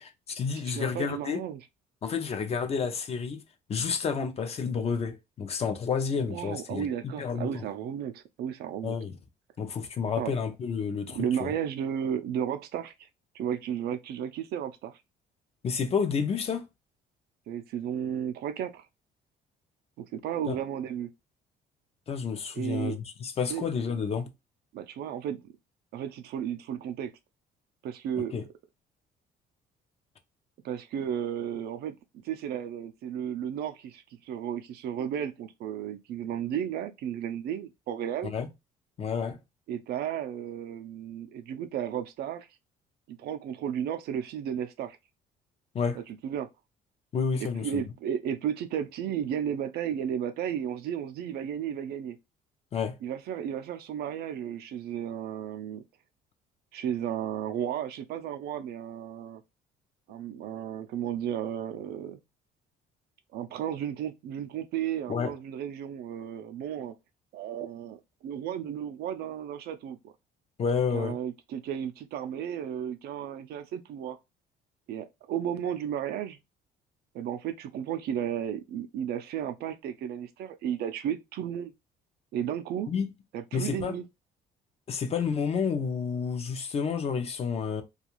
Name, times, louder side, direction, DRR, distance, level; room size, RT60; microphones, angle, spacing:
voice 1, 0.0-1.4 2.0-3.4 3.7-7.7 8.8-9.1 9.6-11.5 15.6-16.7 20.5-20.6 22.1-24.3 28.2-28.4 38.2-38.5 39.0-39.4 45.7-46.0 47.1-47.8 52.7-53.0 65.1-65.3 70.6-71.2 82.9-83.1 83.5-83.9 84.9-87.8, left 6 dB, 35° left, 0.5 m, -30 dB
voice 2, 0.7-1.6 6.3-9.0 10.2-10.3 11.1-12.9 13.3-15.0 17.5-18.8 20.0-21.1 22.5-23.0 23.5-23.7 24.7-25.4 25.9-27.1 27.8-28.3 30.6-32.0 32.2-38.3 39.7-42.5 43.1-45.0 46.2-46.5 47.4-52.2 53.0-55.8 56.7-59.4 60.1-62.2 63.3-66.9 67.3-70.1 70.9-74.2 74.9-76.4 77.1-81.7 82.3-82.9 83.3-84.0, right 9 dB, 70° right, 0.4 m, -33 dB
2.4 x 2.3 x 2.9 m
cardioid pair, 110°, 17 cm